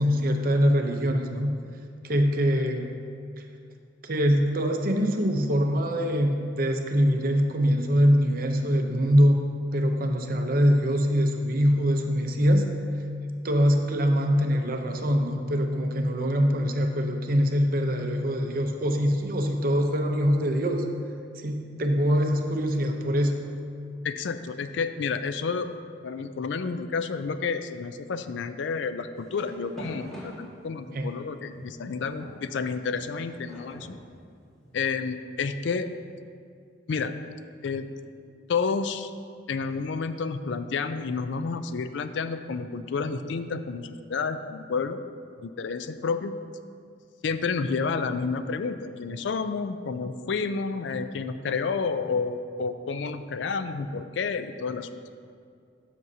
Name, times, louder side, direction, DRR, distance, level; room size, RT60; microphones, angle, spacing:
voice 1, 0.0-1.5 2.0-2.9 4.0-9.4 9.7-12.7 13.4-20.8 21.4-23.4 30.9-31.1, equal, 45° right, 4 dB, 0.6 m, -23 dB
voice 2, 24.0-25.7 26.0-33.9 34.7-35.9 36.9-37.1 37.6-37.9 38.5-39.1 39.5-45.0 45.4-46.3 47.2-55.0, left 5 dB, 65° left, 10 dB, 0.4 m, -30 dB
sound 1, 29.1-31.0 31.5-34.8, equal, ahead, 1.7 m, -44 dB
13.0 x 6.1 x 2.7 m, 2.3 s
head